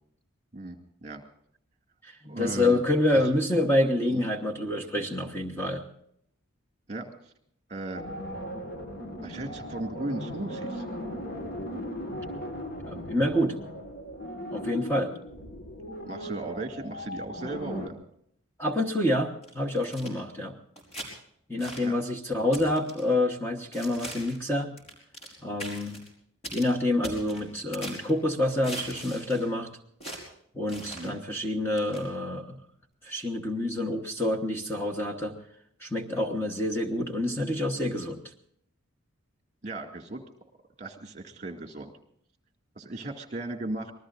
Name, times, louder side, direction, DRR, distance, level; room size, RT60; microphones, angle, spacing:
voice 1, 0.5-1.2 2.2-2.8 3.1-3.2 4.1-4.3 6.9-7.1 7.7-8.0 9.2-10.9 16.1-18.0 21.8-22.0 30.8-31.2 39.6-40.2 40.8-41.9 42.8-43.9, right 2 dB, 35° right, 4 dB, 2.1 m, -36 dB
voice 2, 2.0-5.8 12.9-13.6 14.5-15.1 18.6-20.6 21.5-24.7 25.4-26.0 26.5-29.7 30.5-32.6 33.0-35.4 35.8-38.2, left 1 dB, 10° left, 2 dB, 1.2 m, -27 dB
sound 1, 7.9-17.9, equal, 45° left, 1.6 m, -38 dB
sound 2, 19.4-20.1 20.8-21.1 21.6-21.9 22.5-23.0 23.7-24.4 24.8-25.3 25.6-26.1 26.4-26.7 27.0-28.1 28.6-29.5 30.0-30.2 30.7-31.1 31.8-32.0, right 1 dB, 30° left, 5.0 m, -40 dB
26.0 x 20.0 x 2.5 m, 0.71 s
head